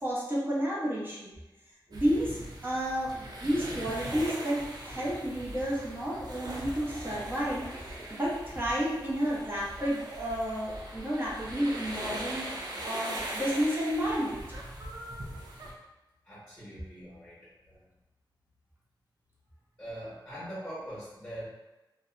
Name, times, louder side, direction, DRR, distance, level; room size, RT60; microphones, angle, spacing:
voice 1, 0.0-1.4 1.9-12.5 12.8-14.4, equal, 25° right, -7 dB, 0.8 m, -31 dB
sound 1, 1.9-15.7, right 1 dB, 55° right, 0.5 m, -40 dB
voice 2, 16.2-17.8 19.8-21.5, equal, 10° left, -9 dB, 1.0 m, -42 dB
2.5 x 2.1 x 2.4 m, 1.0 s
wide cardioid pair, 85°, 8 cm